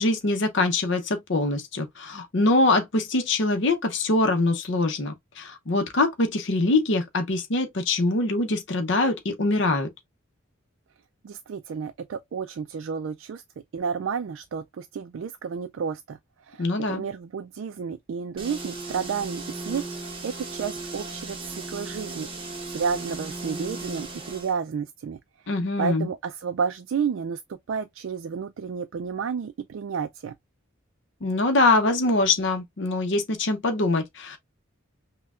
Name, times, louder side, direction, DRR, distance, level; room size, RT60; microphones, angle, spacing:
voice 1, 0.0-9.9 16.6-17.0 25.5-26.1 31.2-34.4, left 2 dB, 55° left, 0.6 m, -23 dB
voice 2, 11.2-13.4 13.7-16.2 16.4-25.2 25.4-30.3, right 6 dB, 65° right, 0.3 m, -31 dB
sound 1, 18.4-24.5, right 3 dB, 25° right, 0.9 m, -36 dB
5.5 x 2.2 x 2.3 m
head